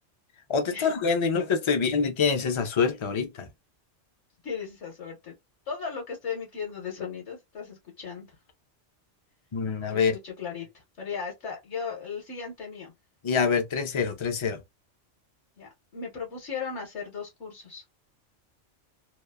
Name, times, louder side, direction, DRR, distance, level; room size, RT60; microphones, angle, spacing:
voice 1, 0.5-3.5 9.5-10.2 13.2-14.6, left 5 dB, 40° left, 0.4 m, -25 dB
voice 2, 4.4-5.3 5.7-8.3 9.9-12.9 15.6-17.8, left 6 dB, 70° left, 1.3 m, -37 dB
2.9 x 2.1 x 2.2 m
omnidirectional pair, 1.3 m